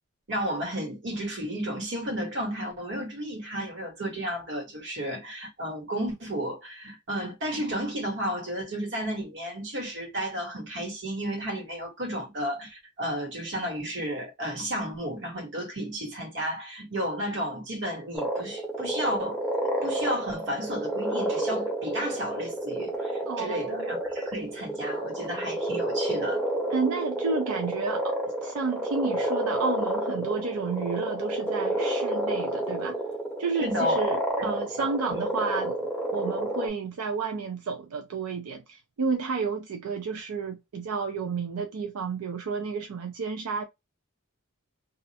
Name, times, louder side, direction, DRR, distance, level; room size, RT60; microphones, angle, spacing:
voice 1, 0.3-19.4 19.8-26.4 33.6-34.0 34.4-34.5 34.8-34.9 35.2-35.3, equal, 60° right, 1.3 m, -33 dB
sound 1, 18.2-36.7, right 1 dB, 5° left, 0.7 m, -30 dB
voice 2, 23.3-23.9 26.7-33.0 33.4-43.6, right 4 dB, 85° right, 0.4 m, -31 dB
2.3 x 2.0 x 2.8 m
head